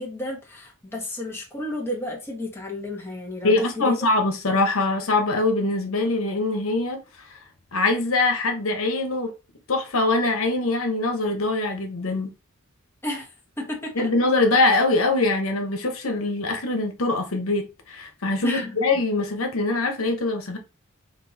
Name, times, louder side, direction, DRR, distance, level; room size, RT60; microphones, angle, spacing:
voice 1, 0.0-4.1 13.0-13.3 13.6-14.1 18.4-18.7, left 1 dB, 10° left, 1.3 m, -32 dB
voice 2, 3.4-7.0 7.7-9.3 9.7-12.3 13.9-20.6, left 2 dB, 90° left, 1.1 m, -23 dB
6.0 x 2.7 x 2.9 m
head